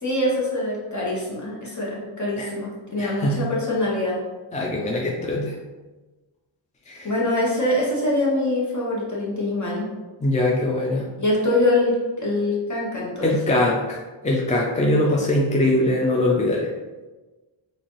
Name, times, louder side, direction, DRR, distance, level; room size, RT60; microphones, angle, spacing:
voice 1, 0.0-4.2 7.0-9.9 11.2-13.3 15.0-15.2, left 1 dB, 35° left, -5 dB, 1.2 m, -24 dB
voice 2, 3.0-3.5 4.5-5.6 6.9-7.1 10.2-11.1 13.2-14.0 14.2-16.7, left 1 dB, 15° left, -3 dB, 0.3 m, -22 dB
4.0 x 2.5 x 3.0 m, 1.2 s
wide cardioid pair, 110°, 48 cm